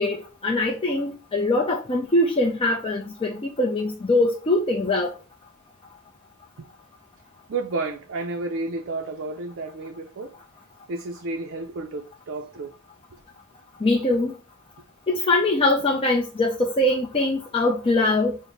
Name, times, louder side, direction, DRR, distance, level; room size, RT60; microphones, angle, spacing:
voice 1, 0.0-5.1 13.8-14.4 15.1-18.4, left 2 dB, 25° left, 0.4 m, -22 dB
voice 2, 7.5-10.3 10.9-12.7, right 3 dB, 55° right, 0.4 m, -31 dB
4.0 x 2.1 x 3.2 m
head